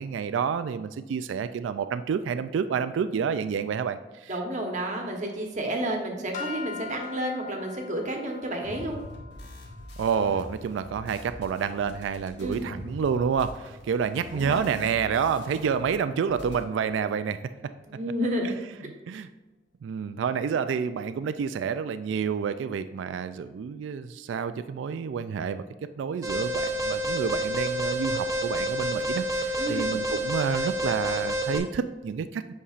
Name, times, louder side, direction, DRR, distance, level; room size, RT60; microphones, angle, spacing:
voice 1, 0.0-4.3 10.0-17.4 18.4-18.6 18.9-19.3 19.8-25.6 26.0-32.5, right 6 dB, 80° right, 11 dB, 0.3 m, -29 dB
voice 2, 4.3-9.0 12.4-12.6 14.3-14.6 17.8-18.5 29.6-30.0, right 1 dB, 40° right, 2 dB, 1.0 m, -31 dB
sound 1, 6.3-12.7, left 6 dB, 45° left, 0.8 m, -44 dB
sound 2, 8.6-16.6, left 1 dB, 65° left, 1.3 m, -44 dB
Alarm, 26.2-31.6, right 1 dB, 20° right, 0.8 m, -28 dB
8.4 x 5.5 x 2.4 m, 1.2 s
head